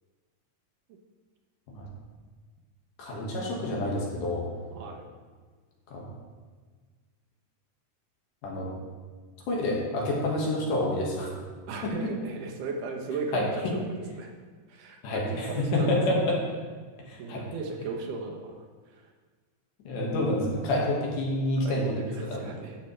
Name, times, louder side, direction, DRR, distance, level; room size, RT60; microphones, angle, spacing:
voice 1, 3.0-4.4 5.9-6.0 8.4-8.7 9.5-11.3 11.8-11.9 13.3-13.7 15.0-16.4 17.1-17.4 19.8-21.9 22.3-22.4, left 1 dB, 75° left, -3 dB, 3.2 m, -28 dB
voice 2, 4.7-5.0 11.7-14.3 14.7-16.0 17.2-19.1 21.6-22.8, right 4 dB, 75° right, 1 dB, 2.5 m, -36 dB
11.5 x 7.4 x 3.2 m, 1.5 s
omnidirectional pair, 3.7 m